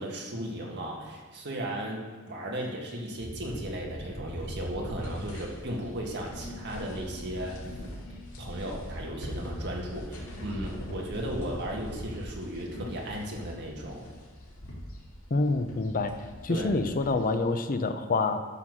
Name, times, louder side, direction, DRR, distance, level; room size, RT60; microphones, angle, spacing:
voice 1, 0.0-7.6 8.4-14.1 16.5-16.7, right 1 dB, 55° right, -1 dB, 1.7 m, -36 dB
sound 1, 3.2-17.4, equal, 80° left, 2.3 m, -41 dB
voice 2, 15.3-18.4, left 3 dB, 40° left, 8 dB, 0.6 m, -27 dB
11.5 x 4.0 x 6.2 m, 1.5 s
head